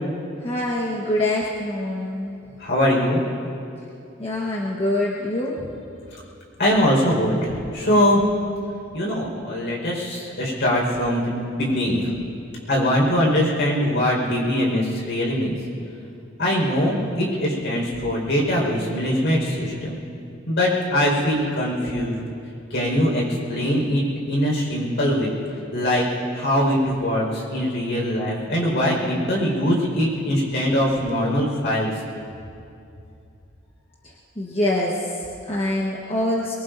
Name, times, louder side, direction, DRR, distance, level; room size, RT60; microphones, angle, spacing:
voice 1, 0.4-2.4 4.2-5.7 34.0-36.5, left 1 dB, 30° left, -4 dB, 1.3 m, -25 dB
voice 2, 2.6-3.2 6.6-8.2 8.9-12.1 12.7-15.5 16.4-20.0 20.5-22.2 22.7-23.2 23.5-25.3 25.7-26.0 26.3-31.9, equal, 60° left, -3 dB, 5.1 m, -22 dB
23.0 x 22.5 x 2.7 m, 2.6 s
head